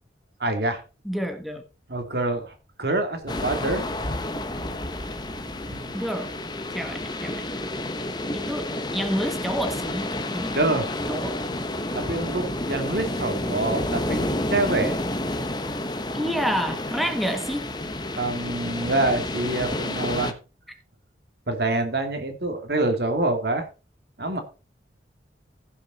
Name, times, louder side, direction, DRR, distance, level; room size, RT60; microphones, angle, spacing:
voice 1, 0.4-0.8 1.9-3.8 5.7-6.1 10.5-10.9 11.9-15.0 18.1-20.4 21.5-23.7 24.2-24.4, right 2 dB, 60° right, 2.5 m, -26 dB
voice 2, 1.0-1.6 5.9-6.3 6.7-7.4 8.3-10.6 11.1-11.4 16.1-17.7, equal, ahead, 1.2 m, -28 dB
Thunder, 3.2-7.1 8.4-8.5, equal, 55° left, 2.3 m, -38 dB
sound 1, 3.3-20.3, left 1 dB, 25° left, 1.1 m, -30 dB
16.0 x 6.5 x 4.2 m
head